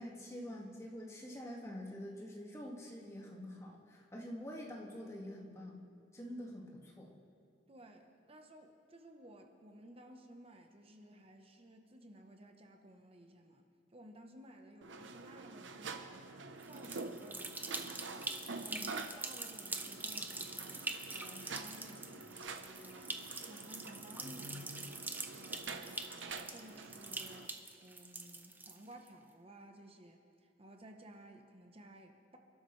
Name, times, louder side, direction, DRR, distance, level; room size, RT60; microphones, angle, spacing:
voice 1, 0.0-5.8 6.1-7.2 18.7-18.9, equal, 15° left, -2 dB, 2.0 m, -46 dB
voice 2, 7.7-16.2 16.6-17.7 18.5-18.9 19.1-24.8 25.3-26.0 26.5-32.4, right 1 dB, 30° right, 4 dB, 1.0 m, -56 dB
sound 1, 14.8-27.5, right 3 dB, 85° right, 0.9 m, -47 dB
sound 2, 16.6-29.1, right 3 dB, 10° right, 0.7 m, -44 dB
28.0 x 12.0 x 3.3 m, 2.6 s
head